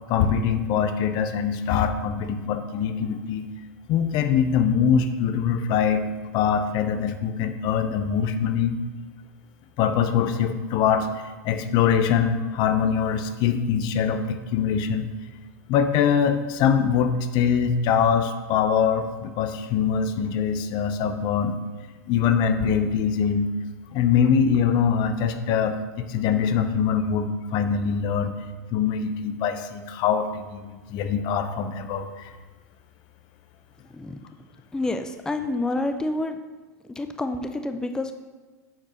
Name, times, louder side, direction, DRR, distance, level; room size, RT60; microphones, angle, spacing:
voice 1, 0.1-3.5 3.9-6.1 6.3-8.8 9.8-15.1 15.7-21.5 22.1-23.5 23.9-28.4 28.7-32.3, left 7 dB, 45° left, 9 dB, 0.8 m, -23 dB
voice 2, 34.7-36.4 36.9-38.1, left 2 dB, 5° left, 7 dB, 0.5 m, -28 dB
7.6 x 4.5 x 5.8 m, 1.3 s
hypercardioid pair, 110°, 10 cm